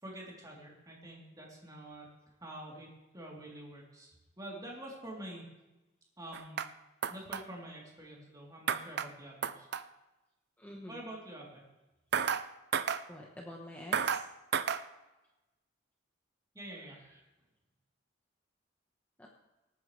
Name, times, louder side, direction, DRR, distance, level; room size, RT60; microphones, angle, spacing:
voice 1, 0.0-2.1 2.4-5.4 6.2-6.7 7.1-9.7 10.9-11.6 16.5-17.2, right 1 dB, 20° right, -3 dB, 3.3 m, -47 dB
sound 1, 6.3-6.7 7.0-7.4 8.7-9.1 9.4-9.8 12.1-12.5 12.7-13.0 13.9-14.3 14.5-14.8, right 7 dB, 60° right, 0.5 m, -31 dB
voice 2, 10.6-11.0 13.1-14.2 19.2-19.3, left 1 dB, 10° left, -2 dB, 1.1 m, -47 dB
24.5 x 9.3 x 3.3 m, 1.1 s
head